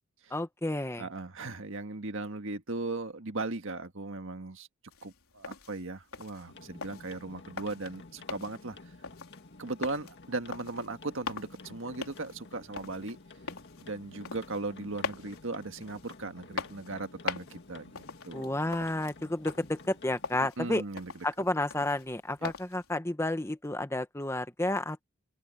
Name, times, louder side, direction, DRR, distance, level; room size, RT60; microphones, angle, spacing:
voice 1, 0.3-1.0 18.3-20.8 21.2-25.0, left 1 dB, 10° left, 1.0 m, -31 dB
voice 2, 1.0-4.7 5.0-8.8 9.6-13.2 13.8-18.5 20.4-21.1 22.4-22.5, right 3 dB, 65° right, 1.7 m, -38 dB
sound 1, 4.9-22.9, left 4 dB, 75° left, 3.8 m, -43 dB
sound 2, 6.5-20.3, left 3 dB, 55° left, 2.0 m, -52 dB
open air
head